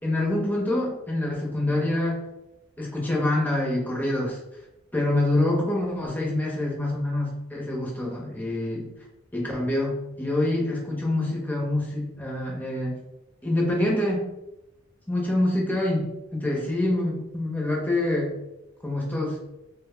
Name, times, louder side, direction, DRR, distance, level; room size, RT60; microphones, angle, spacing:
voice 1, 0.0-2.2 2.8-4.4 4.9-8.9 9.3-12.9 13.4-14.3 15.1-16.0 16.3-18.3 18.8-19.4, left 1 dB, 10° left, -2 dB, 0.7 m, -26 dB
3.0 x 2.1 x 3.6 m, 0.90 s
head